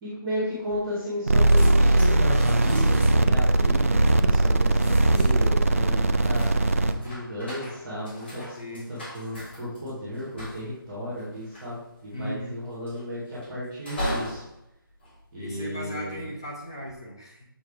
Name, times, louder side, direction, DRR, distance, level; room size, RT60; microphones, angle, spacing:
voice 1, 0.0-6.4 6.9-14.4 15.3-16.3, equal, 5° right, -15 dB, 1.5 m, -34 dB
sound 1, 0.7-1.2 1.4-16.0 16.6-17.0, equal, 30° left, 2.4 m, -40 dB
sound 2, 1.3-6.9, right 2 dB, 40° right, 0.4 m, -20 dB
voice 2, 8.6-8.9 12.1-12.6 15.4-17.4, equal, 10° left, -3 dB, 0.7 m, -37 dB
7.2 x 5.5 x 3.5 m, 0.80 s
figure-of-eight pair, 180°, 12 cm